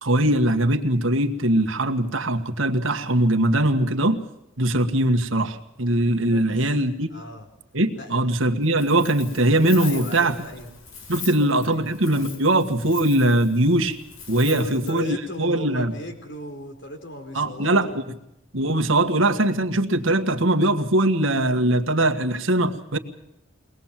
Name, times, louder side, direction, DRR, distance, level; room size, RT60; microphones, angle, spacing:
voice 1, 0.0-4.2 4.6-7.1 7.7-10.4 11.1-14.0 14.3-15.9 17.3-18.0 18.5-23.0, right 1 dB, 70° right, 6 dB, 1.8 m, -21 dB
voice 2, 6.3-6.7 7.1-7.4 7.9-8.3 9.8-10.7 11.2-11.9 14.3-17.9, left 1 dB, 60° left, 5 dB, 4.5 m, -36 dB
Wind, 8.6-15.1, left 5 dB, 85° left, 3.4 m, -41 dB
23.0 x 20.0 x 7.5 m, 0.84 s
head